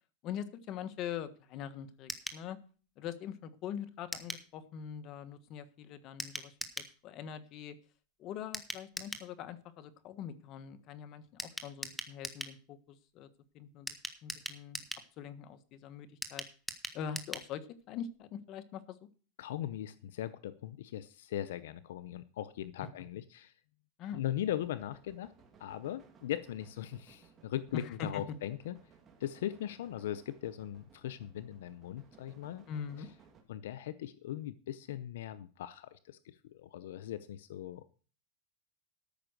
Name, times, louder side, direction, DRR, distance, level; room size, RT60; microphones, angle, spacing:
voice 1, 0.2-2.6 3.0-6.6 7.0-7.8 8.2-13.3 13.5-14.0 14.2-14.8 15.2-16.4 16.9-19.0 24.0-24.2 27.7-28.2 32.7-33.1, left 8 dB, 45° left, 11 dB, 1.4 m, -43 dB
sound 1, 2.1-2.4 4.1-4.5 6.2-6.9 8.5-9.3 11.4-12.6 13.9-15.1 16.2-17.5 17.8-17.9 18.1-18.2, equal, ahead, 1.3 m, -41 dB
voice 2, 19.4-23.5 24.1-25.3 25.6-28.8 29.2-32.7 33.5-37.8, left 12 dB, 80° left, 14 dB, 0.6 m, -39 dB
sound 2, 24.4-33.4, right 5 dB, 25° right, 2.5 m, -62 dB
13.5 x 6.0 x 6.5 m, 0.39 s
supercardioid pair, 135°, 0 cm